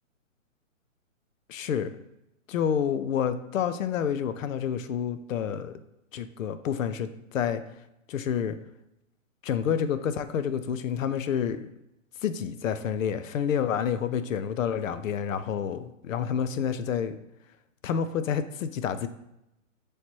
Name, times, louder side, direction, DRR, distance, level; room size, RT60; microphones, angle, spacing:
voice 1, 1.5-1.9 2.5-5.8 6.1-7.6 8.1-8.6 9.4-11.7 12.2-17.2 17.8-19.1, left 8 dB, 75° left, 12 dB, 0.5 m, -29 dB
3.2 x 2.9 x 4.3 m, 0.86 s
hypercardioid pair, 160°, 40 cm